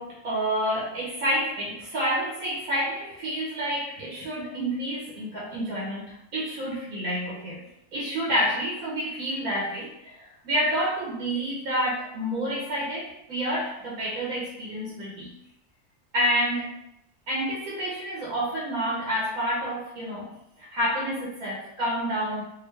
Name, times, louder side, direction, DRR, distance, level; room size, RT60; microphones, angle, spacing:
voice 1, 0.0-7.6 7.9-15.3 16.1-16.7 17.3-22.4, equal, 75° right, -5 dB, 1.3 m, -29 dB
3.6 x 2.7 x 3.2 m, 0.84 s
omnidirectional pair, 1.5 m